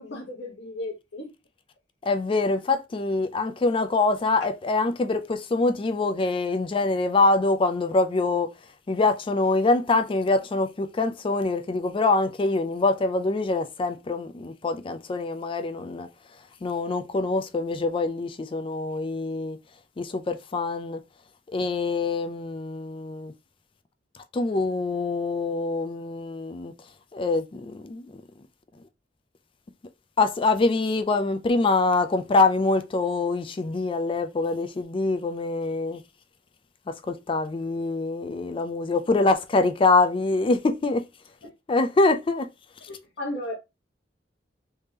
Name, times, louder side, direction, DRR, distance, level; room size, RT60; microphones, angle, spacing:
voice 1, 0.0-1.3 42.9-43.6, left 1 dB, 90° left, 0.9 m, -35 dB
voice 2, 2.0-8.6 8.9-16.1 16.6-19.6 20.0-21.0 21.5-23.3 24.3-26.7 27.1-28.1 30.2-36.0 36.9-41.1 41.7-42.5 42.8-42.9, left 3 dB, 30° left, 0.4 m, -24 dB
3.4 x 2.7 x 3.2 m
head